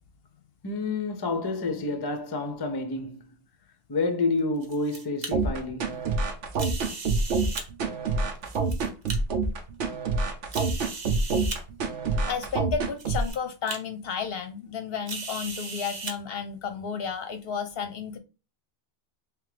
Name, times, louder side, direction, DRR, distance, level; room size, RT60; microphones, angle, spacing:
voice 1, 0.6-3.3 3.9-6.0, left 3 dB, 30° left, 0.4 m, -29 dB
sound 1, 4.4-5.3 6.5-7.7 8.4-9.2 9.8-9.9 10.5-11.6 12.5-12.6 13.0-13.4 13.7-13.8 15.1-16.1, right 3 dB, 40° right, 0.9 m, -37 dB
sound 2, 5.3-13.3, right 3 dB, 85° right, 1.0 m, -26 dB
voice 2, 12.3-18.2, left 6 dB, 65° left, 0.7 m, -32 dB
3.5 x 3.3 x 3.3 m
omnidirectional pair, 1.2 m